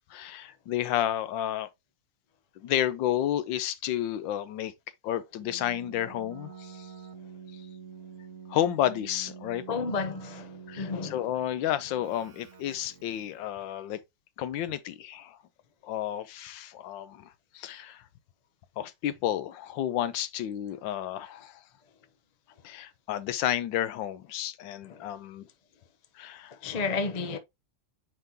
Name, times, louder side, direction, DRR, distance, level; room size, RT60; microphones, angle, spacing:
voice 1, 0.0-1.7 2.6-4.7 5.0-6.9 7.5-7.6 8.5-9.6 10.7-14.0 14.4-15.4 15.8-18.0 18.8-21.6 22.6-25.5 26.2-26.5, left 11 dB, 85° left, 1.4 m, -31 dB
Keyboard (musical), 5.4-13.5, right 6 dB, 50° right, 1.1 m, -47 dB
voice 2, 9.7-11.2 24.9-25.1 26.6-27.4, left 4 dB, 65° left, 0.4 m, -32 dB
9.3 x 3.7 x 2.8 m
omnidirectional pair, 2.0 m